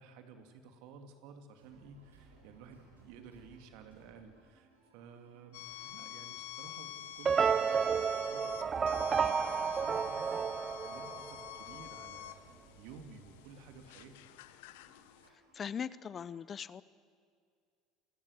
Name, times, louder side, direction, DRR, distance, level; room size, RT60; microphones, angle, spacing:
voice 1, 0.0-12.4 12.8-14.2, right 5 dB, 65° right, 6 dB, 2.6 m, -54 dB
sound 1, 1.6-16.3, right 3 dB, 85° right, 4.7 m, -63 dB
sound 2, 5.5-15.3, left 14 dB, 70° left, 1.0 m, -48 dB
sound 3, 7.2-11.6, right 6 dB, 30° right, 0.5 m, -31 dB
voice 2, 15.5-16.8, left 7 dB, 35° left, 19 dB, 0.7 m, -40 dB
27.0 x 21.0 x 6.6 m, 2.2 s
hypercardioid pair, 70°, 0 cm